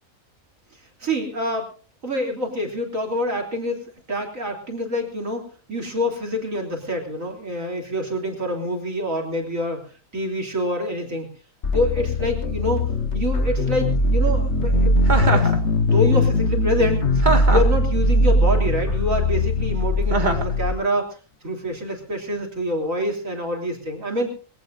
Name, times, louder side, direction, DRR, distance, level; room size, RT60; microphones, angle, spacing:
voice 1, 1.0-1.7 2.0-9.9 10.1-11.3 11.7-12.9 13.1-15.5 15.8-21.2 21.4-24.4, equal, 70° right, 1 dB, 3.8 m, -26 dB
sound 1, 11.6-20.7, left 1 dB, 55° left, 1.7 m, -20 dB
Chuckle chortle, 15.1-15.6 17.2-17.8 20.1-20.5, right 3 dB, 35° right, 2.3 m, -22 dB
22.5 x 17.0 x 2.7 m, 0.36 s
omnidirectional pair, 1.4 m